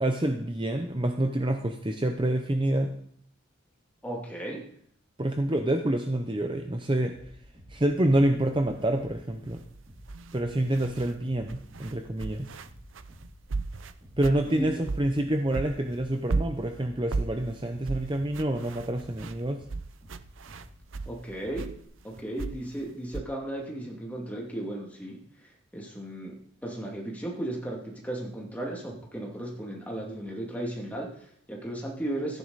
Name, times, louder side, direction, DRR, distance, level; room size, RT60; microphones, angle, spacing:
voice 1, 0.0-2.9 5.2-7.2 7.7-9.6 10.3-12.5 14.2-19.6, right 1 dB, 25° right, 5 dB, 0.7 m, -27 dB
voice 2, 4.0-4.6 14.5-14.8 21.1-21.7 22.0-26.3 26.6-32.4, right 1 dB, 10° left, -2 dB, 2.4 m, -35 dB
sound 1, 7.1-21.9, equal, 45° right, 5.7 m, -51 dB
sound 2, 8.6-8.8 9.5-11.1 11.5-15.3 15.5-21.2 21.6-23.2, right 3 dB, 70° right, 0.6 m, -35 dB
14.0 x 9.5 x 4.1 m, 0.65 s
head